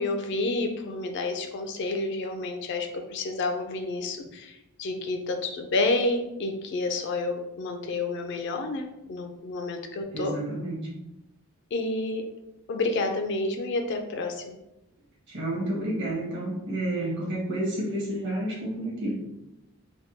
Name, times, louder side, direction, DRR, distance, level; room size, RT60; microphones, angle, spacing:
voice 1, 0.0-10.4 11.7-12.3 12.7-14.5, left 2 dB, 55° left, 5 dB, 0.4 m, -29 dB
voice 2, 10.1-10.9 15.3-19.2, right 1 dB, 55° right, -4 dB, 1.1 m, -30 dB
3.4 x 2.2 x 2.7 m, 0.93 s
head